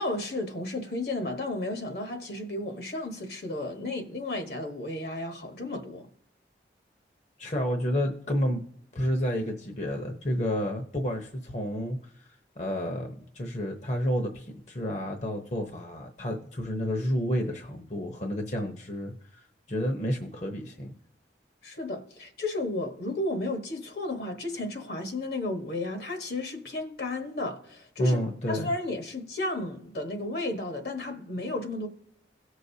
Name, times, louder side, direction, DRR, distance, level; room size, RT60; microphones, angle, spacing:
voice 1, 0.0-6.1 21.6-28.2 28.5-31.9, left 2 dB, 65° left, 1.3 m, -33 dB
voice 2, 7.4-8.6 8.9-12.3 12.6-19.4 19.7-20.9 28.0-28.7, equal, 40° left, 0.8 m, -30 dB
17.5 x 6.4 x 2.7 m
head